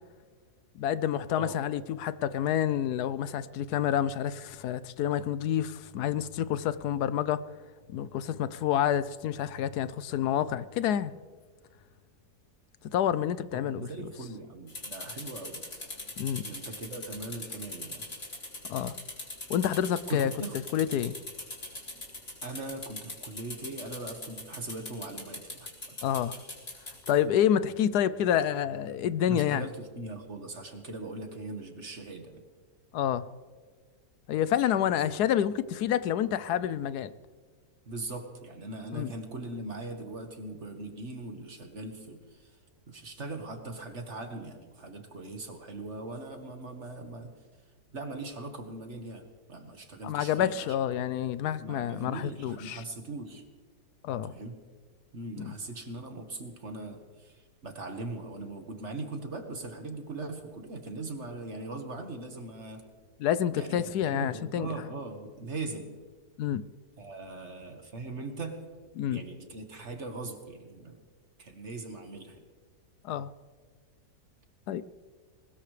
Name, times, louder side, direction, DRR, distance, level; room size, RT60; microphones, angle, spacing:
voice 1, 0.8-7.4 7.9-11.1 12.9-13.9 16.2-16.4 18.7-18.9 19.5-20.3 20.7-21.1 26.0-26.4 27.1-29.7 32.9-33.2 34.3-37.1 38.9-39.1 50.0-52.8 54.0-54.3 55.4-55.5 63.2-64.7 66.4-66.6 69.0-69.2 73.0-73.3 74.7-74.8, left 10 dB, 75° left, 15 dB, 1.1 m, -28 dB
voice 2, 13.5-15.7 16.4-18.1 20.1-20.6 22.4-26.0 29.3-32.4 37.9-42.6 42.9-47.3 47.9-50.8 51.1-51.2 51.6-53.4 54.2-54.6 55.1-62.8 63.5-65.9 67.0-68.6 69.1-71.0 71.4-72.4, right 2 dB, 45° right, 5 dB, 1.8 m, -40 dB
sound 1, 14.7-27.1, left 2 dB, 45° left, 4.5 m, -41 dB
21.0 x 20.0 x 3.3 m, 1.5 s
omnidirectional pair, 1.7 m